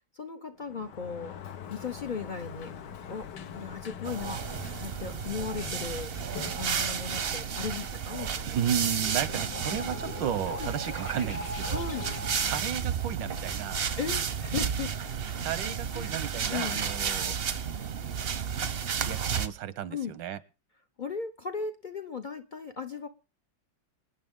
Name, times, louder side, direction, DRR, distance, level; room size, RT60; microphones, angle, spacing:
voice 1, 0.1-1.3 1.7-2.7 3.1-4.4 4.8-6.1 6.5-8.6 10.6-10.7 11.7-12.1 14.0-14.9 15.9-16.2 16.5-16.8 19.9-20.1 21.0-23.1, left 6 dB, 55° left, 8 dB, 0.5 m, -37 dB
Sliding door, 0.6-8.4, left 8 dB, 70° left, 1.6 m, -44 dB
sound 1, 4.0-19.5, right 7 dB, 50° right, 0.7 m, -32 dB
sound 2, 8.3-15.8, left 1 dB, 90° left, 4.3 m, -41 dB
voice 2, 8.4-11.8 12.4-13.8 15.2-17.4 19.0-20.4, right 9 dB, 85° right, 15 dB, 1.6 m, -33 dB
26.0 x 9.5 x 3.7 m, 0.34 s
omnidirectional pair, 1.9 m